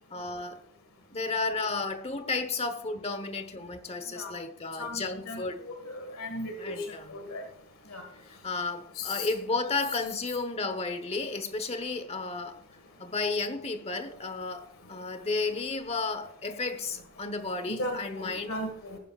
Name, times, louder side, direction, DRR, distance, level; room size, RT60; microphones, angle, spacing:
voice 1, 0.1-0.6 1.1-5.6 6.6-7.2 8.3-12.6 13.0-18.5, left 3 dB, 30° left, 1.1 m, -33 dB
voice 2, 4.8-7.4 7.9-8.0 9.0-9.3 17.7-19.0, left 1 dB, 70° left, 1.8 m, -37 dB
18.0 x 10.0 x 2.4 m
head